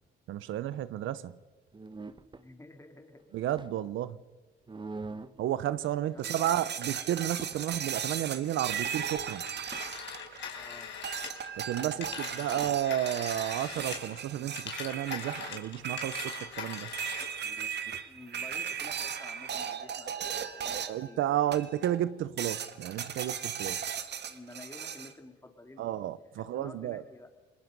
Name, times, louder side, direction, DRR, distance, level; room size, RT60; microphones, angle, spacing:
voice 1, 0.3-1.4 3.3-4.2 5.4-9.4 11.6-16.9 20.9-23.9 25.8-27.0, right 12 dB, 80° right, 0.7 m, -32 dB
sound 1, 1.7-2.4 3.2-4.0 4.7-5.4 5.9-6.5 6.9-7.0 7.3-7.9 9.2-9.9 12.1-12.2 12.6-12.8 13.2-13.9 17.4-18.1, right 3 dB, 25° right, 1.0 m, -46 dB
voice 2, 2.3-3.2 6.1-6.6 10.5-10.9 11.7-12.8 18.0-21.5 24.2-25.9 26.3-27.3, left 2 dB, 15° left, 3.4 m, -51 dB
sound 2, 6.2-10.6 11.0-21.1 21.5-22.0 22.4-25.1, right 8 dB, 60° right, 1.6 m, -37 dB
Telephone, 9.5-14.2 14.5-17.4, left 6 dB, 65° left, 4.5 m, -42 dB
28.5 x 21.0 x 5.4 m
cardioid pair, 90°, 20 cm